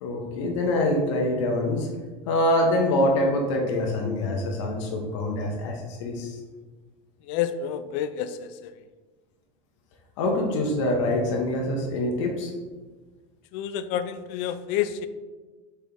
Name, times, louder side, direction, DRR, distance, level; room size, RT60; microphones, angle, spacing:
voice 1, 0.0-1.9 2.3-6.4 10.2-12.5, left 1 dB, 85° left, 0 dB, 0.9 m, -25 dB
voice 2, 7.2-8.7 13.5-15.1, left 9 dB, 60° left, 11 dB, 0.4 m, -29 dB
4.2 x 3.4 x 3.5 m, 1.3 s
supercardioid pair, 140°, 15 cm